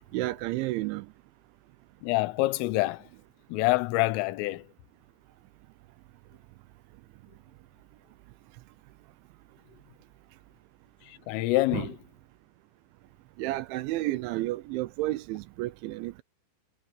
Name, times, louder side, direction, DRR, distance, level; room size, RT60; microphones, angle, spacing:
voice 1, 0.1-1.1 11.7-11.9 13.4-16.2, right 18 dB, 80° right, 2.8 m, -31 dB
voice 2, 2.0-3.1 3.5-4.7 11.0-12.0, left 19 dB, 90° left, 3.5 m, -26 dB
omnidirectional pair, 5.7 m